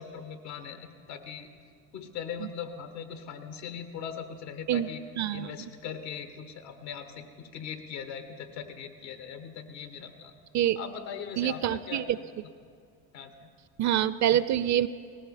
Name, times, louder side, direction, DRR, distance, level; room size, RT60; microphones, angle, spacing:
voice 1, 0.0-1.5 1.9-5.0 5.3-10.3 10.7-12.1 13.1-13.5, left 7 dB, 80° left, 8 dB, 1.5 m, -40 dB
voice 2, 5.2-5.7 10.5-10.8 11.4-12.0 13.8-14.9, right 11 dB, 35° right, 16 dB, 0.5 m, -26 dB
18.5 x 15.0 x 4.2 m, 2.2 s
hypercardioid pair, 70°, 49 cm